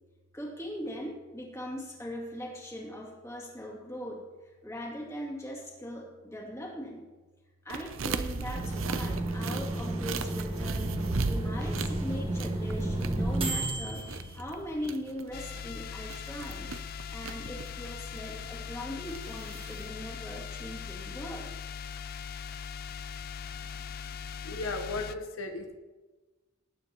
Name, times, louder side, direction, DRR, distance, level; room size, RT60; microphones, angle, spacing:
voice 1, 0.3-4.2 4.6-7.0 7.6-10.9 11.2-14.0 14.3-16.7 17.1-21.7, equal, 15° left, -3 dB, 2.5 m, -40 dB
sound 1, 7.7-19.9, right 4 dB, 75° right, 0.6 m, -38 dB
sound 2, 8.5-15.0, right 1 dB, 25° right, 1.6 m, -32 dB
sound 3, 15.3-25.2, left 7 dB, 45° left, 0.4 m, -40 dB
voice 2, 24.4-25.8, left 2 dB, 80° left, 4 dB, 1.0 m, -35 dB
19.0 x 9.3 x 3.0 m, 1.2 s
head